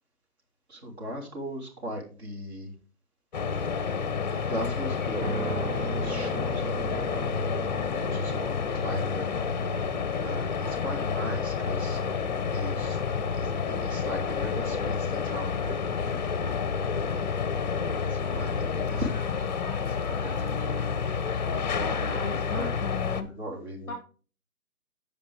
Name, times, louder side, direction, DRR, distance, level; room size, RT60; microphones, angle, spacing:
voice 1, 0.7-2.7 3.5-3.6 4.3-7.3 8.0-9.5 10.2-12.0 12.3-13.0 13.3-16.4 18.1-22.8 23.2-23.9, equal, 45° right, 1 dB, 3.4 m, -38 dB
sound 1, 3.3-23.2, left 6 dB, 30° left, 0.7 m, -29 dB
sound 2, 5.2-19.2, right 4 dB, 60° right, 1.4 m, -40 dB
voice 2, 18.8-19.8 21.8-23.3 23.9-24.0, left 4 dB, 5° left, 2 dB, 1.3 m, -39 dB
14.5 x 5.2 x 3.5 m, 0.37 s
hypercardioid pair, 150°, 44 cm